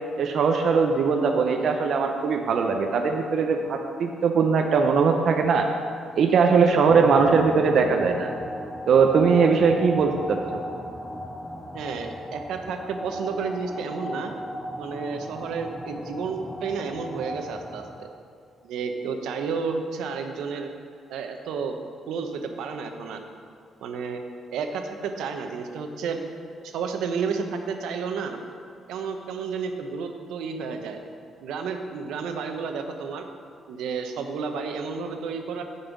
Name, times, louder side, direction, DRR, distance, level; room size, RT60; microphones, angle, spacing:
voice 1, 0.0-5.7 6.2-8.3 8.9-10.4, right 5 dB, 50° right, 3 dB, 0.6 m, -20 dB
sound 1, 6.9-18.2, equal, 5° left, 0.5 m, -36 dB
voice 2, 11.7-14.3 14.8-18.1 18.6-20.7 21.1-21.8 22.1-23.2 23.8-24.2 24.5-26.2 26.6-28.4 28.9-31.0 31.4-33.3 33.7-35.6, right 5 dB, 85° right, 5 dB, 0.8 m, -31 dB
8.9 x 5.5 x 7.2 m, 2.2 s
cardioid pair, 170°, 0 cm